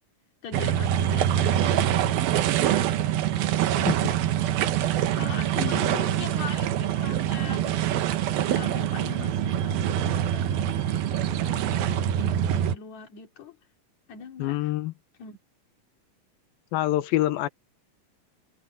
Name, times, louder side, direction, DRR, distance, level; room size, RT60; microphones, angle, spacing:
voice 1, 0.4-4.1 4.8-7.8 8.5-13.6 14.1-14.7 15.2-15.4, left 6 dB, 55° left, 3.9 m, -42 dB
sound 1, 0.5-12.8, right 11 dB, 85° right, 3.0 m, -25 dB
voice 2, 5.6-6.0 14.4-14.9 16.7-17.5, left 15 dB, 85° left, 2.7 m, -26 dB
omnidirectional pair, 4.1 m